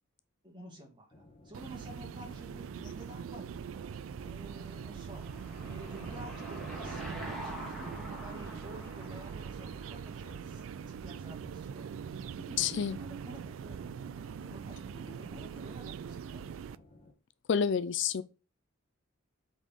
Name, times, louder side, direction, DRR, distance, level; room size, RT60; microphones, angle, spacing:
voice 1, 0.4-12.6 13.0-16.6, equal, 25° right, 2.2 m, -51 dB
sound 1, 1.1-17.1, left 2 dB, 30° left, 1.2 m, -58 dB
sound 2, 1.5-16.8, right 7 dB, 85° right, 0.3 m, -42 dB
Car passing by / Engine, 4.0-10.7, right 1 dB, ahead, 2.2 m, -45 dB
voice 2, 12.6-13.0 17.5-18.2, left 7 dB, 65° left, 0.4 m, -28 dB
8.1 x 4.1 x 3.6 m
head